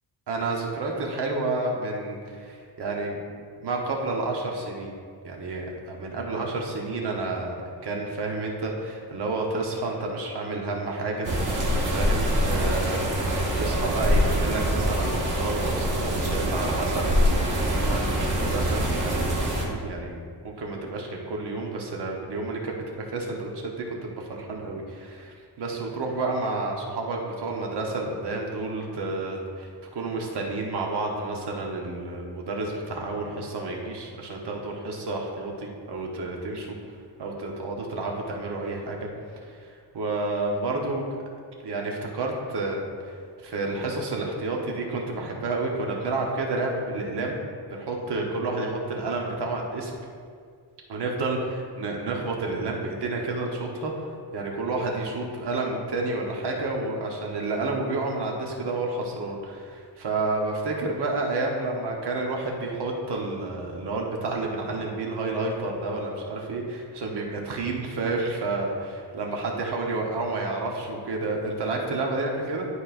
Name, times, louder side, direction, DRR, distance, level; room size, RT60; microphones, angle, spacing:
voice 1, 0.3-3.2 3.6-4.9 5.2-7.5 7.8-13.0 13.5-20.2 20.4-36.7 37.2-39.0 39.4-41.0 41.6-43.1 43.4-47.4 47.7-49.9 50.9-53.9 54.3-72.7, right 2 dB, 65° right, 0 dB, 1.2 m, -30 dB
sound 1, 11.2-19.6, equal, 45° right, 1.4 m, -24 dB
11.0 x 4.3 x 2.6 m, 2.1 s
wide cardioid pair, 150°, 44 cm